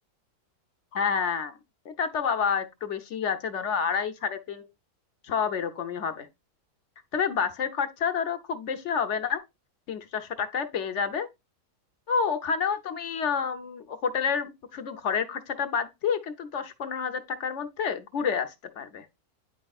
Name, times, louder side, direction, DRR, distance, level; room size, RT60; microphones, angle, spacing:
voice 1, 0.9-1.5 1.9-4.7 5.2-6.3 7.1-9.4 9.9-11.3 12.1-19.1, left 6 dB, 55° left, 0.9 m, -29 dB
9.3 x 5.3 x 2.3 m
omnidirectional pair, 1.7 m